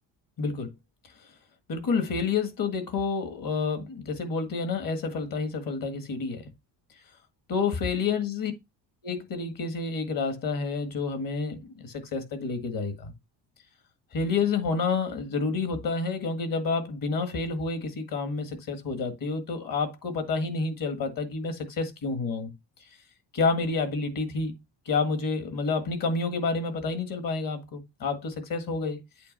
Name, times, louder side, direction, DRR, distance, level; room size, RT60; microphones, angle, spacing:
voice 1, 0.4-0.7 1.7-6.5 7.5-8.5 9.0-13.1 14.1-22.5 23.3-24.5 24.8-29.0, left 4 dB, 50° left, 1.8 m, -29 dB
8.4 x 2.9 x 5.4 m
cardioid pair, 150°, 45 cm